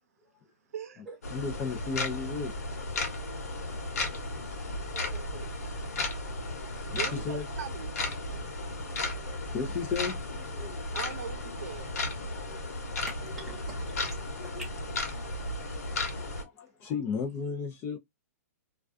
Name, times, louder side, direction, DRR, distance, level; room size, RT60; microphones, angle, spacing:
voice 1, 0.7-1.0 3.0-3.8 6.9-7.9 10.9-11.9, right 8 dB, 65° right, 0.6 m, -42 dB
sound 1, 1.2-16.4, left 2 dB, 75° left, 1.1 m, -35 dB
voice 2, 1.3-2.5 6.7-7.4 8.3-8.5 8.8-9.0 9.2-10.8 12.2-12.6 12.9-13.0 14.4-14.6 15.9-16.1 16.4-18.0, left 5 dB, 25° left, 0.5 m, -35 dB
voice 3, 4.9-5.7 13.1-14.2 14.6-14.7, right 2 dB, 5° right, 1.1 m, -45 dB
2.3 x 2.2 x 2.4 m
hypercardioid pair, 150°, 9 cm